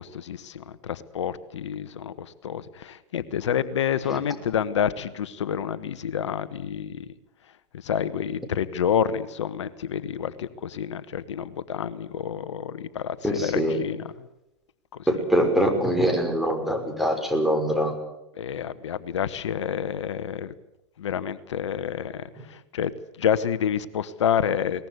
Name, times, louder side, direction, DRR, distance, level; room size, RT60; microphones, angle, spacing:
voice 1, 0.0-7.1 7.8-14.3 18.4-20.5 21.0-22.9 23.2-24.9, left 8 dB, 85° left, 14 dB, 1.2 m, -28 dB
voice 2, 13.2-13.8 15.1-17.9, equal, ahead, 3 dB, 5.8 m, -23 dB
22.5 x 20.0 x 8.0 m, 0.88 s
hypercardioid pair, 110°, 15 cm